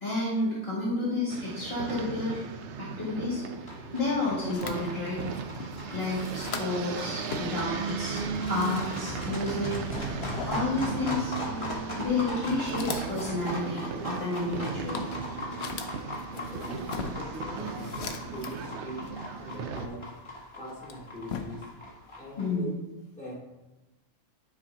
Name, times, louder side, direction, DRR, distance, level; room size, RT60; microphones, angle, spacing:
voice 1, 0.0-2.4 2.8-3.4 3.9-5.2 5.9-8.2 8.5-9.8 10.5-11.3 11.9-15.1 22.4-22.7, left 2 dB, 40° left, -6 dB, 1.8 m, -30 dB
sound 1, 1.3-19.9, right 5 dB, 65° right, 0.7 m, -37 dB
sound 2, 3.7-22.5, left 1 dB, 20° left, 1.4 m, -39 dB
sound 3, 4.5-6.9 7.2-9.5 9.8-10.7 11.4-11.6 12.2-18.7 19.0-20.2 20.7-21.8, left 6 dB, 60° left, 0.7 m, -41 dB
voice 2, 15.7-16.0 16.3-19.1 19.4-20.1 20.6-21.6 22.2-22.7 23.2-23.3, right 1 dB, 5° left, -7 dB, 2.2 m, -42 dB
9.6 x 4.5 x 2.7 m, 1.1 s
omnidirectional pair, 1.5 m